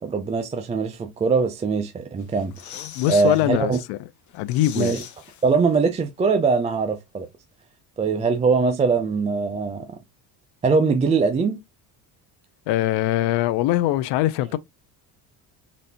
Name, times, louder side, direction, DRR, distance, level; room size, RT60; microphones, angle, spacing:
voice 1, 0.0-2.5 3.1-3.8 4.8-5.0 5.4-7.3 8.0-9.9 10.6-11.6, right 4 dB, 15° right, 0.4 m, -22 dB
sound 1, 2.2-3.5 3.9-4.0 4.3-6.0 6.3-6.4, left 9 dB, 45° left, 0.9 m, -41 dB
voice 2, 2.7-4.0 4.3-5.0 12.7-14.6, left 14 dB, 80° left, 0.6 m, -22 dB
4.1 x 3.2 x 2.8 m
cardioid pair, 140°, 40 cm